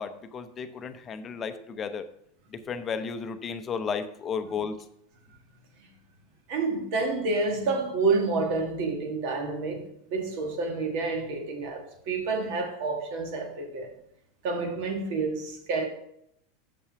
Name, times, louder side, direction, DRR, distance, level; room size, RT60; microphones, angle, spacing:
voice 1, 0.0-2.0 2.5-4.8, left 6 dB, 25° left, 0.6 m, -33 dB
voice 2, 6.5-13.9 14.4-15.9, right 3 dB, 60° right, 1.9 m, -29 dB
6.9 x 5.5 x 5.8 m
supercardioid pair, 125°, 0 cm